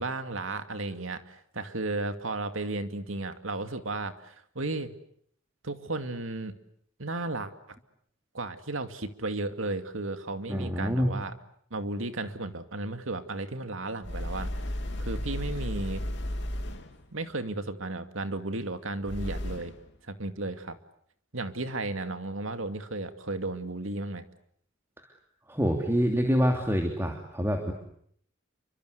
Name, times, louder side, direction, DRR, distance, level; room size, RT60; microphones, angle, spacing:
voice 1, 0.0-4.9 5.6-6.5 7.0-7.5 8.3-11.3 11.7-14.5 15.0-16.0 17.1-19.7 20.1-20.8 21.3-24.2, right 2 dB, 70° right, 8 dB, 2.4 m, -34 dB
voice 2, 10.5-11.1 25.5-27.7, equal, 10° right, 3 dB, 3.0 m, -26 dB
sound 1, 14.0-17.1 19.0-19.9, left 1 dB, 60° left, 3.1 m, -34 dB
29.5 x 25.0 x 8.2 m, 0.67 s
head